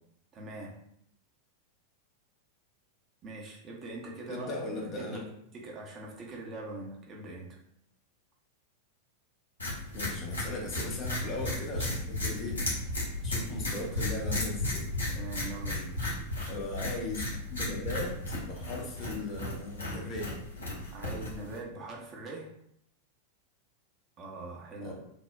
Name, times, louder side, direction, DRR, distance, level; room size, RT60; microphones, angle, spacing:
voice 1, 0.3-0.7 3.2-7.6 15.1-16.0 20.9-22.5 24.2-24.9, right 2 dB, 30° right, -2 dB, 0.6 m, -42 dB
voice 2, 4.3-5.2 9.9-12.6 13.2-14.9 16.5-20.4 24.8-24.9, left 2 dB, 30° left, 0 dB, 0.6 m, -38 dB
sound 1, 9.6-21.6, left 2 dB, 75° left, 0.9 m, -34 dB
3.2 x 2.0 x 2.3 m, 0.73 s
figure-of-eight pair, 90°, 0 cm